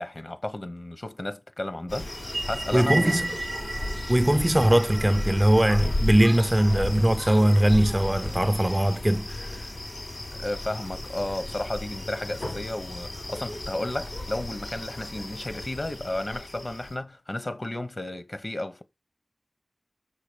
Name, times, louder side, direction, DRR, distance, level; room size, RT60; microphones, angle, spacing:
voice 1, 0.0-3.3 10.4-18.8, left 1 dB, 55° left, 1.0 m, -33 dB
sound 1, 1.9-17.0, left 1 dB, 85° left, 4.3 m, -34 dB
sound 2, 2.1-6.7, right 2 dB, 70° right, 0.6 m, -35 dB
voice 2, 2.7-3.4 4.1-9.7, right 1 dB, 25° right, 0.4 m, -21 dB
6.6 x 5.7 x 5.0 m
wide cardioid pair, 45°, 0 cm